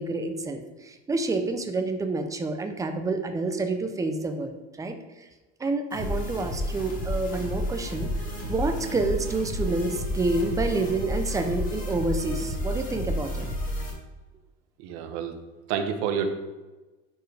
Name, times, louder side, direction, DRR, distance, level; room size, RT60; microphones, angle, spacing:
voice 1, 0.0-5.3 5.6-13.5, right 3 dB, 10° right, 6 dB, 0.6 m, -28 dB
sound 1, 5.9-13.9, equal, 25° left, 2.1 m, -31 dB
voice 2, 14.8-15.3 15.7-16.3, right 7 dB, 75° right, 7 dB, 1.1 m, -28 dB
10.5 x 4.6 x 3.4 m, 1.2 s
cardioid pair, 160°, 29 cm